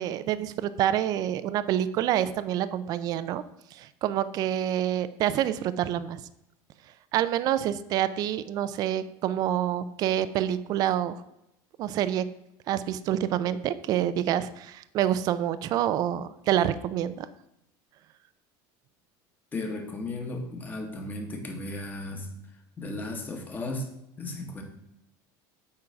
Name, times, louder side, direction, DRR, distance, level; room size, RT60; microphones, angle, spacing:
voice 1, 0.0-3.4 3.7-6.2 7.1-11.2 11.8-12.3 12.7-17.3, right 11 dB, 40° right, 14 dB, 0.4 m, -27 dB
voice 2, 19.5-22.3 22.8-23.9 24.2-24.6, left 2 dB, 20° left, 3 dB, 1.3 m, -35 dB
8.7 x 3.8 x 5.7 m, 0.85 s
cardioid pair, 160°, 10 cm